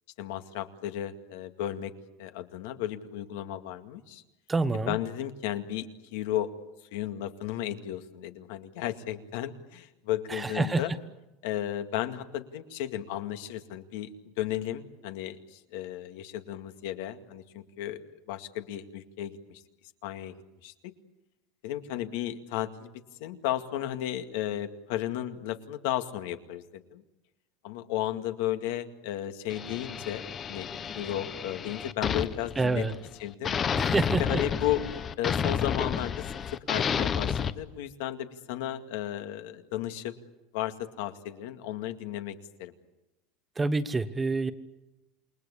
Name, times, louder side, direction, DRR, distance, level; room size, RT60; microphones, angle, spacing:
voice 1, 0.2-1.9 2.2-4.2 4.9-5.9 6.1-6.5 6.9-10.9 11.4-18.0 18.3-19.6 20.0-20.4 20.6-20.7 21.6-22.9 23.2-27.0 27.6-30.7 30.9-32.9 33.2-33.6 34.2-34.9 35.2-36.4 36.7-40.1 40.5-42.7, left 12 dB, 70° left, 8 dB, 2.1 m, -34 dB
voice 2, 4.5-4.9 10.3-10.8 32.6-32.9 33.9-34.4 43.6-44.5, right 3 dB, 10° right, 13 dB, 1.0 m, -27 dB
sound 1, 29.5-33.1 33.4-37.5, left 7 dB, 20° left, 0.8 m, -31 dB
28.5 x 21.0 x 8.4 m, 0.96 s
cardioid pair, 170°, 0 cm